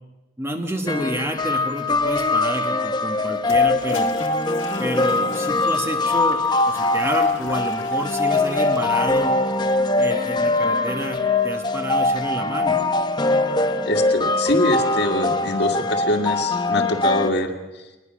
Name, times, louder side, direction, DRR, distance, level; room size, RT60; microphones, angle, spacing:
voice 1, 0.4-4.1 4.8-9.3 10.0-12.8, equal, 15° right, 4 dB, 1.5 m, -29 dB
sound 1, 0.9-17.3, left 2 dB, 20° left, 0.8 m, -22 dB
Toilet flush, 3.4-10.6, left 4 dB, 75° left, 1.9 m, -39 dB
voice 2, 13.9-17.8, left 1 dB, 55° left, 4 dB, 2.1 m, -24 dB
22.0 x 20.5 x 6.3 m, 1.1 s
head